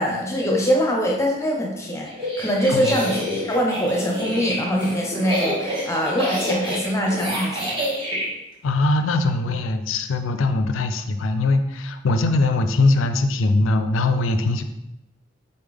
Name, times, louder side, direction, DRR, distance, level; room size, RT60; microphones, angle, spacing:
voice 1, 0.0-7.7, equal, 15° left, -1 dB, 0.7 m, -23 dB
sound 1, 2.1-8.3, equal, 25° right, 0.9 m, -27 dB
voice 2, 8.6-14.6, left 2 dB, 85° left, 8 dB, 0.4 m, -21 dB
4.1 x 3.3 x 3.5 m, 0.87 s
head